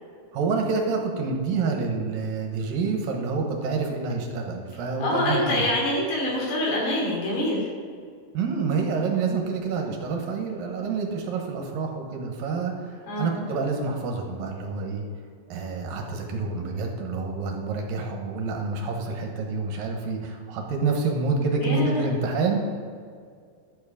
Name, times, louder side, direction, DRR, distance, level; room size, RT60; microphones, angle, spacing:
voice 1, 0.3-5.7 8.3-15.0 15.5-22.7, right 4 dB, 80° right, 2 dB, 3.0 m, -28 dB
voice 2, 5.0-7.7 13.1-13.4 21.6-22.0, left 1 dB, 85° left, -3 dB, 4.7 m, -25 dB
11.5 x 7.3 x 5.1 m, 2.1 s
omnidirectional pair, 4.1 m